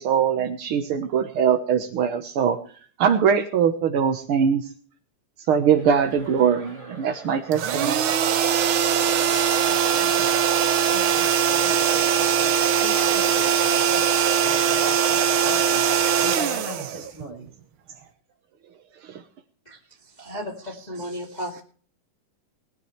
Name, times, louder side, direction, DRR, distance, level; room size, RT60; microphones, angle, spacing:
voice 1, 0.0-2.6 3.0-4.7 5.5-8.0 19.0-19.2, right 7 dB, 60° right, 6 dB, 1.5 m, -22 dB
Chuckle chortle, 5.7-9.4, equal, 10° right, 6.6 m, -45 dB
sound 1, 7.5-17.5, right 8 dB, 75° right, 1.2 m, -21 dB
voice 2, 8.9-10.4 10.9-14.1 14.4-17.5, equal, 40° right, 4 dB, 6.8 m, -39 dB
voice 3, 20.2-21.6, equal, 15° left, 1 dB, 2.2 m, -34 dB
20.0 x 12.5 x 3.3 m, 0.43 s
omnidirectional pair, 3.7 m